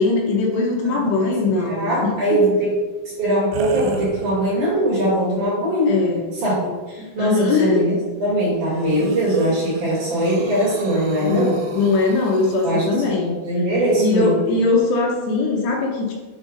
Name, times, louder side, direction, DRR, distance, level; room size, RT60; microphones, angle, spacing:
voice 1, 0.0-2.4 5.9-6.2 6.6-7.8 11.2-13.3 14.0-16.1, left 3 dB, 70° left, -2 dB, 3.1 m, -21 dB
voice 2, 0.8-1.3 1.6-2.7 3.0-6.0 6.3-6.6 6.9-11.6 12.6-14.4, right 1 dB, 50° right, -6 dB, 3.4 m, -21 dB
sound 1, 3.5-4.8 5.4-5.5 8.7-12.7, right 4 dB, 80° right, 3.0 m, -35 dB
7.3 x 5.3 x 5.3 m, 1.3 s
omnidirectional pair, 5.4 m